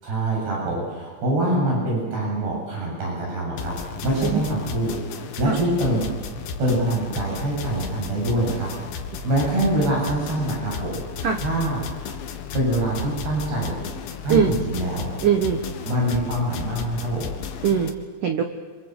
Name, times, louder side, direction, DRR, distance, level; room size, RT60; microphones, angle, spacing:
voice 1, 0.0-4.9 5.4-6.1 6.6-8.7 9.2-11.0 11.4-12.1 12.5-13.8 14.2-15.1 15.9-17.3, right 1 dB, 50° right, -3 dB, 9.5 m, -24 dB
sound 1, 3.6-17.9, left 6 dB, 70° left, 3.7 m, -34 dB
voice 2, 15.2-15.6 17.6-17.9 18.2-18.4, right 7 dB, 85° right, 5 dB, 1.8 m, -21 dB
27.0 x 26.5 x 8.1 m, 1.4 s
omnidirectional pair, 6.0 m